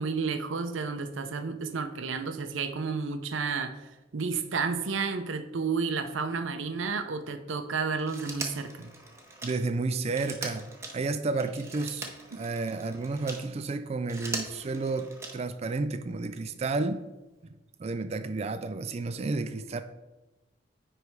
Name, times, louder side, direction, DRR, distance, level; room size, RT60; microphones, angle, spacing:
voice 1, 0.0-3.8 4.1-8.9 12.3-12.4, right 5 dB, 75° right, 0.6 m, -31 dB
Telephone, 8.0-13.5 13.9-15.6 16.9-17.0, right 3 dB, 15° right, 0.8 m, -41 dB
voice 2, 9.4-10.7 10.9-17.1 17.8-19.8, right 3 dB, 30° right, 0.3 m, -31 dB
9.5 x 3.3 x 4.6 m
head